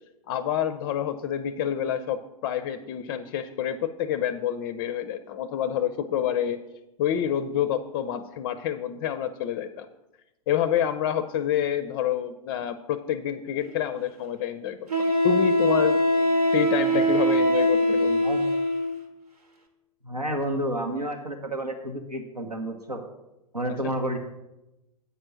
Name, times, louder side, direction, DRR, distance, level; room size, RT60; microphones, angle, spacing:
voice 1, 0.3-6.6 7.0-9.9 10.5-14.9 15.2-16.0 16.5-18.2, left 9 dB, 35° left, 10 dB, 0.4 m, -28 dB
Wind instrument woodwind instrument, 13.6-13.7 14.9-19.0, equal, 70° right, 1.3 m, -22 dB
voice 2, 20.0-23.0 23.5-24.2, right 1 dB, 90° right, 4 dB, 1.0 m, -30 dB
8.3 x 5.3 x 6.1 m, 0.96 s
figure-of-eight pair, 95°, 20 cm